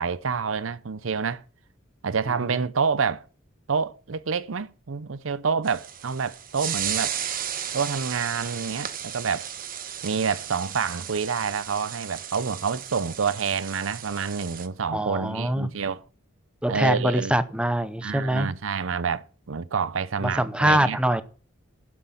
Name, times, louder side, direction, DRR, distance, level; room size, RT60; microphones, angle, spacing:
voice 1, 0.0-1.4 2.0-3.2 3.7-7.2 7.7-9.5 10.0-16.0 16.7-17.4 18.0-21.0, right 5 dB, 85° right, 0.7 m, -28 dB
sound 1, 5.6-14.7, right 9 dB, 45° right, 1.1 m, -34 dB
voice 2, 14.9-15.7 16.6-18.5 20.2-21.2, right 1 dB, 5° right, 0.7 m, -24 dB
12.0 x 7.9 x 5.9 m
head